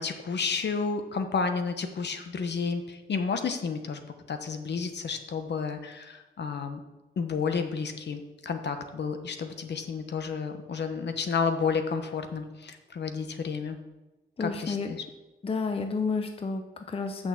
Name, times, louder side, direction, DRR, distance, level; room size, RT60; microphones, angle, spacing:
voice 1, 0.0-4.0 4.3-6.8 7.2-13.8 14.4-15.0, left 5 dB, 60° left, 7 dB, 0.9 m, -31 dB
voice 2, 14.4-15.0 15.4-17.3, left 4 dB, 30° left, 6 dB, 0.6 m, -31 dB
6.3 x 6.2 x 7.3 m, 1.1 s
wide cardioid pair, 140°, 20 cm